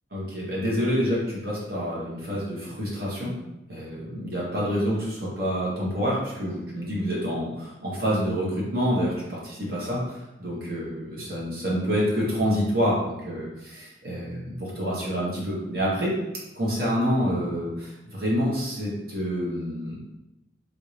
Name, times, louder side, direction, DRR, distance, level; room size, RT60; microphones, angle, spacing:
voice 1, 0.1-3.3 3.7-16.2 16.6-20.0, equal, 55° right, -6 dB, 1.2 m, -27 dB
3.7 x 2.7 x 3.1 m, 0.95 s
head